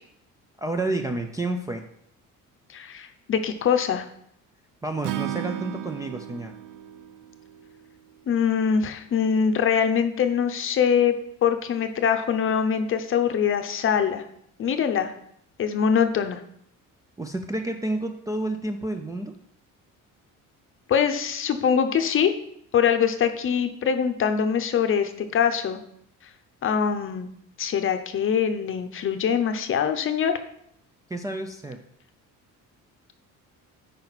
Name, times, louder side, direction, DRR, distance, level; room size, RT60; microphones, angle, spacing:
voice 1, 0.6-1.8 4.8-6.5 17.2-19.3 31.1-31.8, right 2 dB, 10° right, 2 dB, 0.4 m, -30 dB
voice 2, 2.7-4.1 8.3-11.1 11.4-14.2 14.6-15.1 15.6-16.4 20.9-22.3 22.7-25.8 26.6-27.3 27.6-30.3, left 7 dB, 40° left, 8 dB, 0.7 m, -23 dB
Acoustic guitar / Strum, 5.0-8.3, right 13 dB, 75° right, 0.6 m, -35 dB
8.8 x 5.3 x 4.0 m, 0.71 s
cardioid pair, 160°, 32 cm